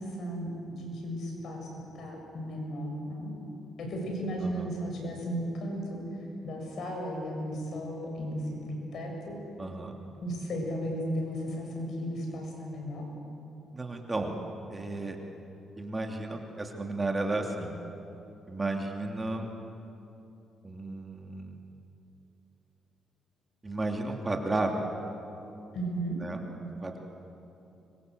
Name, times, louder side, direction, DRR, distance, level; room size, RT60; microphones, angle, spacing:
voice 1, 0.0-1.7 1.9-3.3 3.8-6.0 6.4-9.4 10.2-13.1 25.7-26.2, equal, 65° left, 1 dB, 7.3 m, -35 dB
voice 2, 9.6-9.9 13.7-14.4 14.7-15.2 15.8-17.7 18.5-19.5 20.6-21.6 23.6-24.9 26.2-26.4 26.8-27.0, right 2 dB, 20° right, 2 dB, 2.9 m, -33 dB
25.5 x 23.0 x 8.1 m, 2.9 s
cardioid pair, 90°, 0 cm